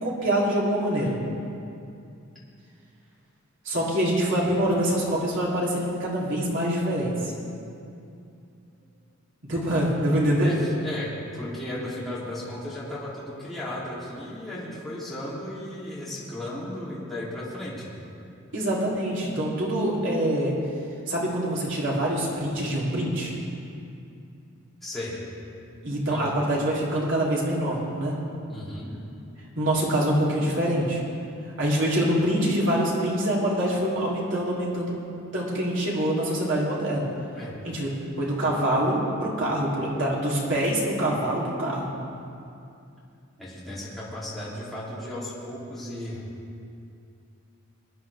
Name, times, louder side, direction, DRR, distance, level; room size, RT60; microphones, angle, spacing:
voice 1, 0.0-1.1 3.6-7.3 9.5-10.5 18.5-20.5 21.1-23.4 25.8-28.2 29.6-31.0 31.6-35.0 35.3-37.1 37.6-41.9, right 1 dB, 60° right, -5 dB, 3.3 m, -25 dB
voice 2, 10.4-17.9 24.8-25.2 26.1-26.3 28.5-28.9 37.3-37.5 43.4-46.3, left 1 dB, ahead, -9 dB, 3.2 m, -35 dB
23.0 x 10.0 x 3.6 m, 2.6 s
head